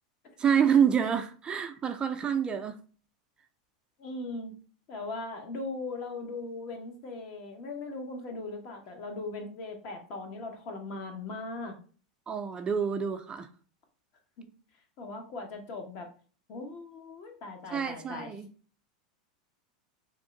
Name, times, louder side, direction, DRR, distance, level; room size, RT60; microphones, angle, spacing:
voice 1, 0.4-2.8 12.3-13.5 17.7-18.5, right 7 dB, 25° right, 0.4 m, -27 dB
voice 2, 4.0-4.5 4.9-11.7 14.4-14.5 15.0-16.1 16.5-18.3, left 3 dB, 50° left, 1.0 m, -39 dB
3.5 x 2.1 x 3.7 m
hypercardioid pair, 105°, 4 cm